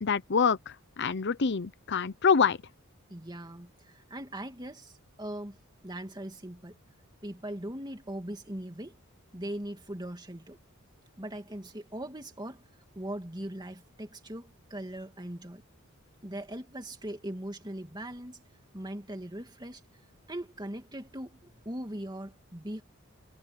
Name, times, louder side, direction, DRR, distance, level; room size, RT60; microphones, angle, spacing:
voice 1, 0.0-2.6, left 6 dB, 55° left, 0.7 m, -26 dB
voice 2, 3.1-5.6 5.8-6.8 7.2-9.0 9.3-10.6 11.2-12.6 12.9-15.6 16.2-18.4 18.7-19.8 20.3-22.8, right 1 dB, 20° right, 2.6 m, -40 dB
head